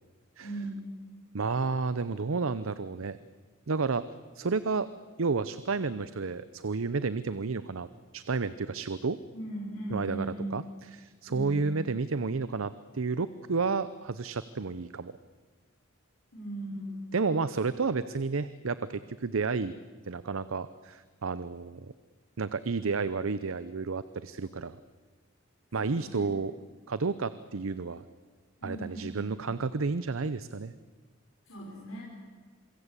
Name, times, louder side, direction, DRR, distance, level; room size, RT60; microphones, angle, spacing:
voice 1, 0.4-0.9 9.3-10.5 11.3-11.7 16.3-17.0 25.8-26.4 28.6-29.3 31.5-32.0, right 1 dB, 75° left, -4 dB, 5.5 m, -38 dB
voice 2, 1.3-3.2 3.7-4.0 4.3-4.9 5.2-7.9 8.1-9.2 9.9-10.3 10.5-10.6 10.9-15.1 17.1-19.7 20.1-21.9 22.4-24.8 25.7-26.6 26.9-28.0 28.6-30.7, right 4 dB, 75° right, 15 dB, 0.7 m, -31 dB
26.5 x 23.0 x 8.3 m, 1.4 s
head